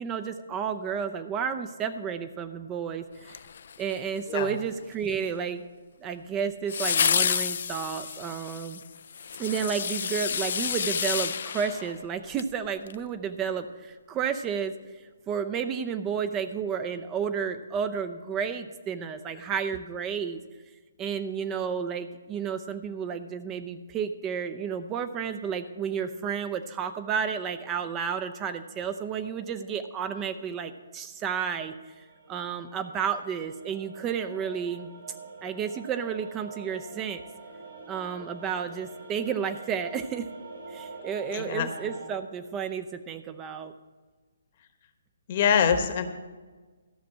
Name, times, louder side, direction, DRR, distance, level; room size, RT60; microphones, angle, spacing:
voice 1, 0.0-3.4 3.8-5.6 6.0-8.8 9.4-20.4 21.0-34.9 35.4-37.2 37.9-40.3 40.7-43.7, right 7 dB, 20° right, 9 dB, 0.5 m, -32 dB
sound 1, 3.3-4.2 6.7-12.5 12.9-13.0, left 7 dB, 55° left, 0.4 m, -29 dB
sound 2, 31.7-42.1, right 4 dB, 70° right, 4.2 m, -45 dB
voice 2, 41.3-41.7 45.3-46.0, left 7 dB, 40° left, 8 dB, 1.1 m, -24 dB
13.5 x 6.0 x 7.4 m, 1.4 s
figure-of-eight pair, 135°, 0 cm